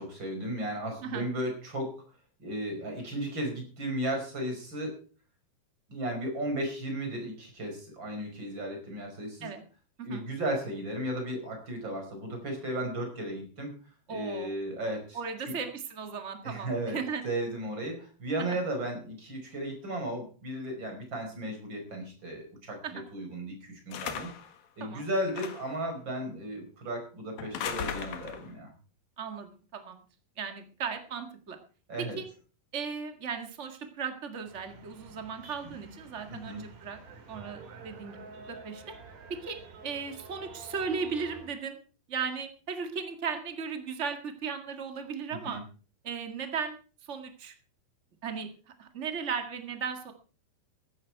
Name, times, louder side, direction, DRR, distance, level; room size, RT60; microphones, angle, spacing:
voice 1, 0.0-2.0 2.4-5.0 5.9-9.5 10.0-13.7 14.1-15.2 15.5-15.6 16.4-17.0 17.2-24.3 24.8-28.7 31.9-32.2 36.3-36.6 45.4-45.6, right 1 dB, 30° right, 3 dB, 5.5 m, -35 dB
voice 2, 14.1-14.5 15.1-17.2 18.5-18.6 22.8-22.9 24.8-25.0 29.2-29.9 30.4-31.6 32.0-32.2 32.7-37.0 37.3-38.8 39.3-39.6 39.8-41.8 42.1-45.6 46.0-46.8 47.1-47.5 48.2-48.5 48.8-50.1, right 6 dB, 85° right, 6 dB, 0.6 m, -36 dB
sound 1, 23.9-24.5 25.3-25.8 27.4-28.5, left 8 dB, 65° left, 3.1 m, -37 dB
sound 2, 34.4-41.5, right 4 dB, 55° right, 3.9 m, -49 dB
15.5 x 13.0 x 4.6 m, 0.38 s
omnidirectional pair, 4.6 m